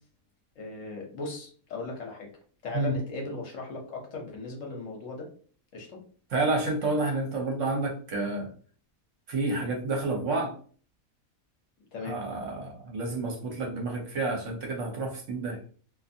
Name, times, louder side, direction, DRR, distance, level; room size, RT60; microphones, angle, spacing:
voice 1, 0.6-2.3 2.6-5.3 5.7-6.0 11.9-12.2, left 3 dB, 65° left, 0 dB, 1.1 m, -37 dB
voice 2, 6.3-8.5 9.3-10.6 12.0-15.6, right 2 dB, 65° right, 2 dB, 1.0 m, -29 dB
2.5 x 2.5 x 2.6 m, 0.43 s
omnidirectional pair, 1.5 m